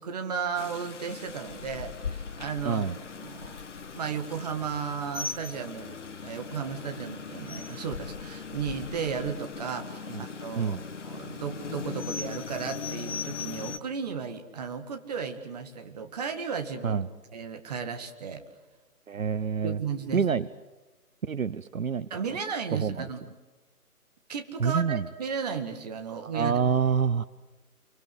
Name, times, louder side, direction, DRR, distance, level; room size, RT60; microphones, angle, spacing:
voice 1, 0.0-2.9 3.2-3.6 3.9-10.8 11.0-17.0 17.3-18.4 19.6-20.3 22.1-23.2 24.3-26.6, right 6 dB, 25° right, 6 dB, 2.0 m, -34 dB
Rain, 0.5-13.8, left 5 dB, 50° left, 1.4 m, -39 dB
voice 2, 2.6-3.0 10.1-10.3 10.6-10.8 16.8-17.1 19.1-19.8 20.1-20.5 21.2-22.4 22.7-23.1 24.6-25.1 26.2-27.3, right 6 dB, 60° right, 16 dB, 0.9 m, -27 dB
28.5 x 24.0 x 8.0 m, 1.2 s
figure-of-eight pair, 155°, 46 cm